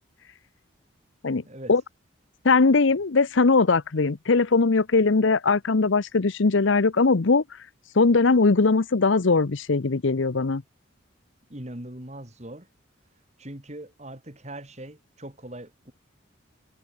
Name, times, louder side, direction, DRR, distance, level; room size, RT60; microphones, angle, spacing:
voice 1, 2.4-7.4 7.9-10.6, left 4 dB, 70° left, 0.7 m, -20 dB
voice 2, 11.5-12.7 13.4-15.9, right 1 dB, 35° right, 2.9 m, -40 dB
head